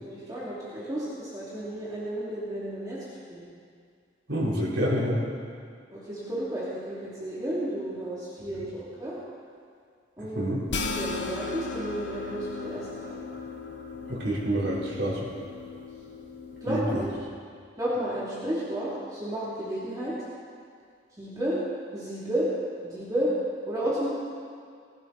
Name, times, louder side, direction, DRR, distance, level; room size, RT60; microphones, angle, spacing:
voice 1, 0.0-3.0 3.3-3.4 5.9-9.1 10.2-10.6 11.0-12.8 16.6-17.1 17.8-20.1 21.2-21.6 21.9-22.5 22.8-23.3 23.7-24.1, right 1 dB, 20° right, -9 dB, 2.8 m, -32 dB
voice 2, 4.3-5.2 10.2-10.6 14.1-15.3 16.7-17.1, equal, 75° right, -6 dB, 4.0 m, -28 dB
sound 1, 10.7-17.2, left 4 dB, 70° left, 1.1 m, -37 dB
20.5 x 12.0 x 4.1 m, 2.2 s
head